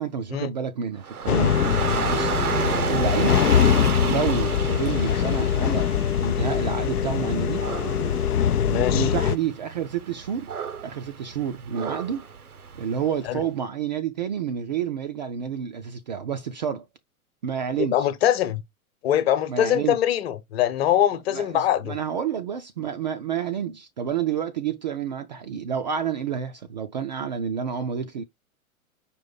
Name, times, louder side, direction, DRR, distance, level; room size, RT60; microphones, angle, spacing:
voice 1, 0.0-1.7 2.1-3.4 4.0-7.7 8.7-10.5 10.8-12.2 12.8-16.8 17.4-18.1 19.5-20.0 21.3-28.2, right 7 dB, 35° right, 0.4 m, -29 dB
Dog / Rain, 1.0-13.2, right 6 dB, 80° right, 0.9 m, -32 dB
sound 1, 1.3-9.4, left 9 dB, 90° left, 0.5 m, -23 dB
voice 2, 8.7-9.1 13.3-13.4 17.9-18.6 19.0-21.9, left 11 dB, 45° left, 1.0 m, -23 dB
5.2 x 2.6 x 3.9 m
figure-of-eight pair, 110°, 44 cm